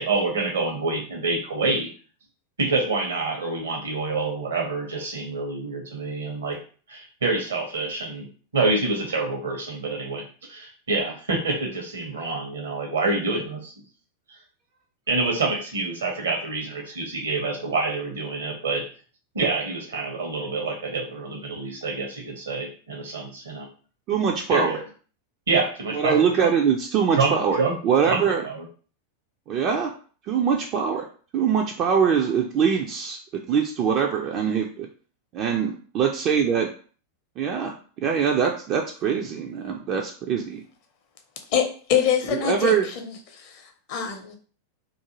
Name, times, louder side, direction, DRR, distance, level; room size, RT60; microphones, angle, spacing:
voice 1, 0.0-1.9 2.6-6.6 6.9-8.3 8.5-10.2 10.5-13.7 14.3-14.4 15.1-18.8 19.3-23.7 24.5-24.8 25.5-26.5 27.1-27.7 28.1-28.6, right 3 dB, 70° right, 1 dB, 0.8 m, -27 dB
voice 2, 24.1-24.7 25.9-28.4 29.5-29.9 30.3-31.0 31.3-33.2 33.5-34.9 35.3-36.7 37.4-37.7 38.0-40.6 42.3-42.9, right 7 dB, 35° right, 1 dB, 0.3 m, -23 dB
voice 3, 41.5-42.7 43.0-43.6 43.9-44.4, left 8 dB, 45° left, 4 dB, 0.6 m, -24 dB
2.4 x 2.3 x 2.9 m, 0.41 s
figure-of-eight pair, 90°, 0 cm